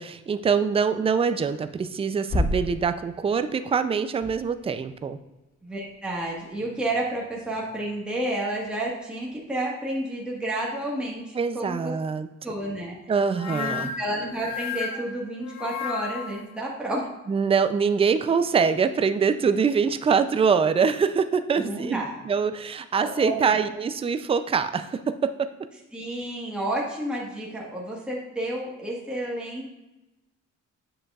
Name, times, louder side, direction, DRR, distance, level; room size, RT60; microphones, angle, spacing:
voice 1, 0.0-5.2 11.3-12.3 13.1-13.9 17.3-25.5, right 6 dB, 20° right, 11 dB, 0.4 m, -24 dB
sound 1, 1.3-3.6 3.9-5.2 5.6-8.0 8.4-9.4, left 1 dB, 30° left, 1.9 m, -34 dB
voice 2, 5.6-11.9 12.4-13.0 13.5-17.0 21.6-22.1 23.0-23.6 25.9-29.7, right 1 dB, 5° right, -4 dB, 1.5 m, -30 dB
sound 2, 13.4-16.5, left 7 dB, 65° left, 0.8 m, -33 dB
7.7 x 6.6 x 2.4 m, 1.0 s
cardioid pair, 90°, 30 cm